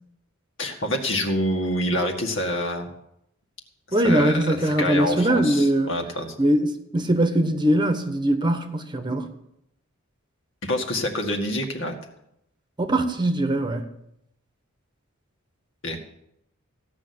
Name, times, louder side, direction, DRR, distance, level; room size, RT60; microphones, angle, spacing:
voice 1, 0.6-2.9 3.9-6.3 10.6-12.0 15.8-16.0, left 1 dB, 60° left, 2.1 m, -26 dB
voice 2, 3.9-5.9 6.4-9.3 12.8-13.9, right 1 dB, 20° right, 1.1 m, -21 dB
16.5 x 6.4 x 9.7 m
head